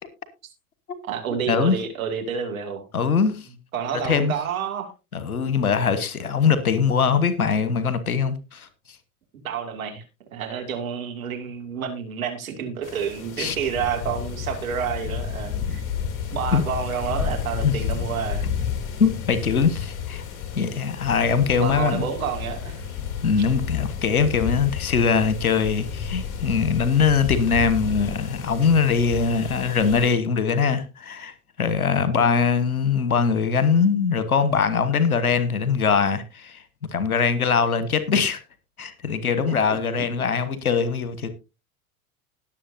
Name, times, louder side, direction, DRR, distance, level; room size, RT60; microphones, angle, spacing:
voice 1, 1.0-2.9 3.7-4.9 9.4-10.0 10.3-15.8 16.3-18.4 21.6-22.8 39.7-40.3, right 7 dB, 75° right, 2.5 m, -29 dB
voice 2, 2.9-3.5 4.0-4.3 5.1-8.7 13.4-13.6 16.5-16.6 17.6-17.7 19.0-20.2 20.5-22.0 23.2-36.6 36.9-38.4 38.8-41.3, left 6 dB, 85° left, 1.4 m, -22 dB
sound 1, 12.8-30.1, left 7 dB, 45° left, 3.4 m, -31 dB
20.0 x 7.5 x 2.7 m
figure-of-eight pair, 80°, 42 cm